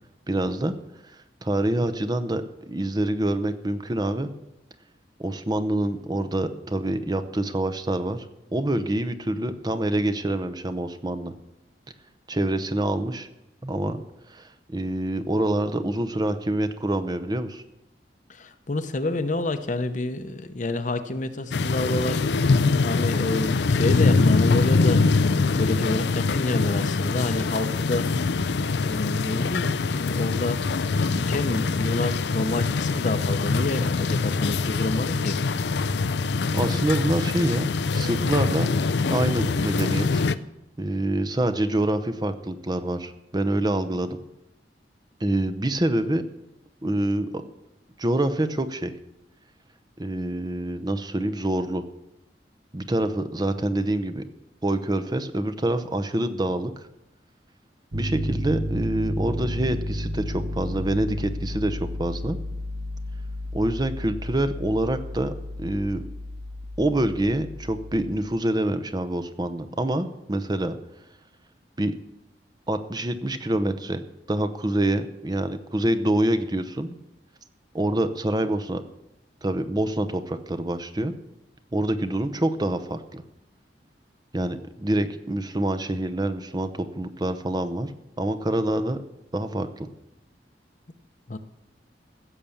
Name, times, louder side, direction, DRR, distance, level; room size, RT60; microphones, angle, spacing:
voice 1, 0.3-0.7 1.4-4.3 5.2-8.2 8.5-11.3 12.3-13.3 13.6-17.6 36.5-38.7 39.1-40.3 40.8-44.2 45.2-46.2 46.8-47.3 48.0-48.9 50.0-51.8 52.7-54.2 54.6-56.9 57.9-62.4 63.5-66.0 66.8-70.8 71.8-71.9 72.7-74.0 74.3-77.0 77.7-78.8 79.4-81.1 81.7-83.2 84.3-87.9 88.2-89.0 89.3-89.9, right 1 dB, 25° right, 10 dB, 0.7 m, -26 dB
voice 2, 18.3-22.2 22.8-25.1 25.4-28.3 28.8-30.6 31.0-35.6 91.3-91.4, left 2 dB, 45° left, 10 dB, 0.8 m, -28 dB
sound 1, 21.5-40.3, left 4 dB, 75° left, 0.5 m, -23 dB
Piano, 57.9-68.2, left 1 dB, 75° right, 1.5 m, -32 dB
15.5 x 7.0 x 7.1 m, 0.90 s
head